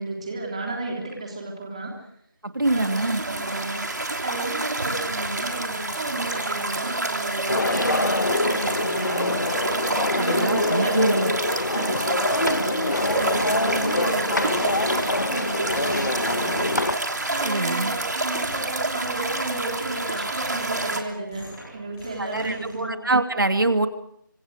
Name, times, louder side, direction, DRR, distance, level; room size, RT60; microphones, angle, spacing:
voice 1, 0.0-1.9 2.7-9.4 10.1-11.3 11.6-16.9 17.3-23.0, right 2 dB, 20° right, 0 dB, 3.4 m, -33 dB
voice 2, 2.4-3.2 10.2-11.3 17.4-17.9 22.2-23.9, right 2 dB, 70° right, 7 dB, 2.7 m, -24 dB
sound 1, 2.6-21.0, right 2 dB, 55° right, 3.2 m, -28 dB
sound 2, 7.5-17.0, left 2 dB, 60° left, 1.5 m, -25 dB
sound 3, 12.3-22.8, equal, 10° left, 7.0 m, -45 dB
27.0 x 26.0 x 5.0 m, 0.70 s
figure-of-eight pair, 175°, 11 cm